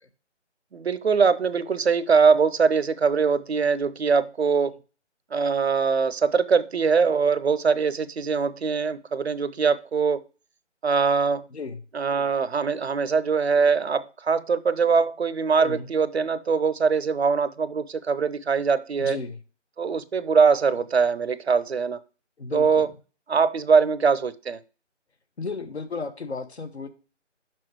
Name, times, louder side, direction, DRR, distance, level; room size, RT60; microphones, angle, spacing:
voice 1, 0.7-4.8 5.3-10.2 10.8-11.5 11.9-19.2 19.8-22.0 22.5-22.9 23.3-24.6, right 5 dB, 60° right, 0.7 m, -22 dB
voice 2, 19.0-19.4 22.4-22.9 25.4-26.9, left 4 dB, 60° left, 1.3 m, -34 dB
6.1 x 5.8 x 4.6 m
figure-of-eight pair, 160°, 37 cm